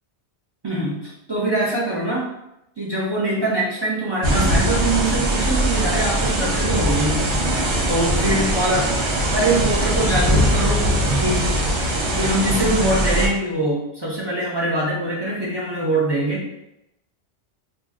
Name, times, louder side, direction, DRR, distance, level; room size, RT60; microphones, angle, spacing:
voice 1, 0.6-2.3 2.8-7.3 7.9-8.9 9.3-11.5 12.0-16.5, right 1 dB, 35° right, -6 dB, 0.4 m, -23 dB
sound 1, 4.2-13.3, right 1 dB, 75° right, 0.9 m, -21 dB
2.6 x 2.0 x 3.5 m, 0.84 s
omnidirectional pair, 1.2 m